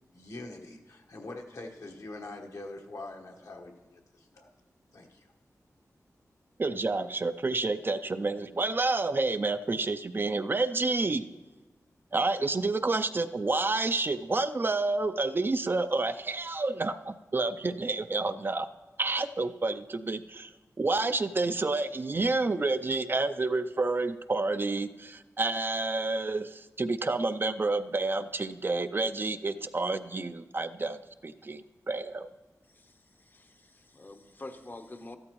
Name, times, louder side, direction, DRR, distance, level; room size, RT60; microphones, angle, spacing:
voice 1, 0.1-4.5 4.9-5.3, left 2 dB, 65° left, 2 dB, 1.2 m, -44 dB
voice 2, 6.6-11.3 12.1-18.7 19.0-20.5 20.8-32.3, right 3 dB, 35° right, 10 dB, 0.4 m, -29 dB
voice 3, 32.7-35.2, left 2 dB, 35° left, 7 dB, 0.7 m, -47 dB
13.5 x 12.5 x 3.0 m, 1.1 s
wide cardioid pair, 90°, 6 cm